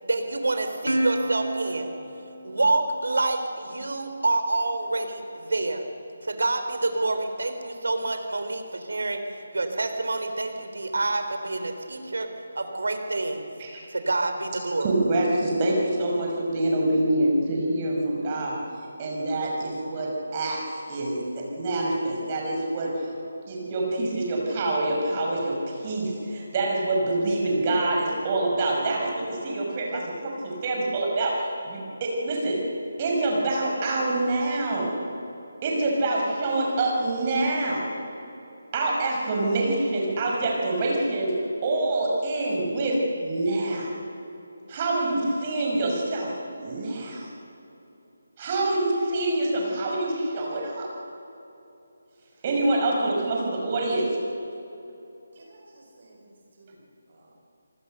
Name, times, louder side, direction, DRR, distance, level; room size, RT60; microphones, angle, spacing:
voice 1, 0.0-1.9 2.4-5.9 6.2-9.2 9.5-12.3 12.5-13.5 13.9-14.9, right 2 dB, 60° right, 6 dB, 3.3 m, -27 dB
Plucked string instrument, 0.9-3.6, right 1 dB, 85° right, 3.0 m, -31 dB
voice 2, 14.8-18.6 19.0-20.6 20.9-23.1 23.5-32.6 33.0-34.9 35.6-37.9 38.7-41.3 41.6-43.9 44.7-46.3 46.6-47.3 48.4-50.9 52.4-54.1, right 2 dB, 30° right, -1 dB, 6.2 m, -26 dB
voice 3, 55.3-57.3, right 2 dB, 45° right, -1 dB, 5.0 m, -55 dB
28.5 x 20.0 x 6.7 m, 2.9 s
figure-of-eight pair, 150°, 0 cm